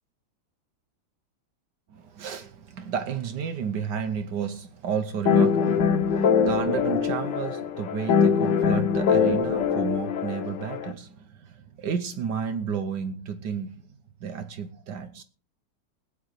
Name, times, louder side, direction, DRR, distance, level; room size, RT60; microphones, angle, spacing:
voice 1, 1.9-13.8 14.2-15.2, right 7 dB, 65° right, 1.3 m, -32 dB
sound 1, 5.2-10.9, left 6 dB, 65° left, 1.7 m, -23 dB
21.5 x 9.1 x 3.1 m
omnidirectional pair, 2.2 m